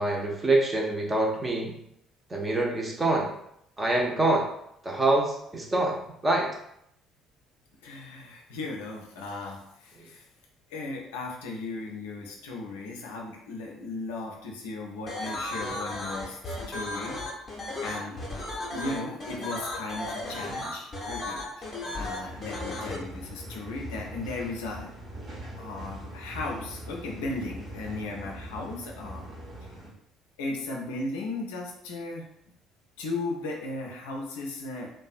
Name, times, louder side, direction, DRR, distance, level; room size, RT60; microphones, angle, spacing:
voice 1, 0.0-1.8 2.3-3.3 3.8-4.4 4.8-6.5, right 2 dB, 20° right, 0 dB, 0.6 m, -25 dB
voice 2, 7.8-10.2 10.7-17.2 17.8-18.2 18.7-24.9 25.6-29.3 30.4-32.3 33.0-34.9, left 2 dB, 70° left, 0 dB, 0.4 m, -36 dB
sound 1, 15.1-23.0, left 2 dB, 30° left, 0.7 m, -35 dB
sound 2, 22.3-29.9, right 1 dB, 35° right, 1.0 m, -42 dB
2.5 x 2.1 x 2.4 m, 0.75 s
figure-of-eight pair, 50°, 0 cm